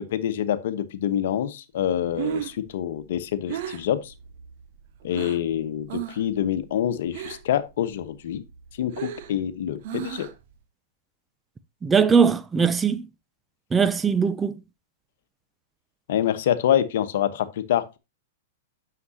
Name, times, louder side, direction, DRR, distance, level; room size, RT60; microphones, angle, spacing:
voice 1, 0.0-4.1 5.0-8.4 8.8-10.3 16.1-18.0, left 10 dB, 65° left, 1.1 m, -26 dB
Breathing, 1.9-5.5 5.9-6.3 6.6-7.6 8.0-10.5, right 11 dB, 55° right, 1.3 m, -35 dB
voice 2, 11.8-13.1 13.7-14.5, right 6 dB, 15° right, 0.7 m, -20 dB
9.6 x 6.9 x 2.8 m
hypercardioid pair, 110°, 0 cm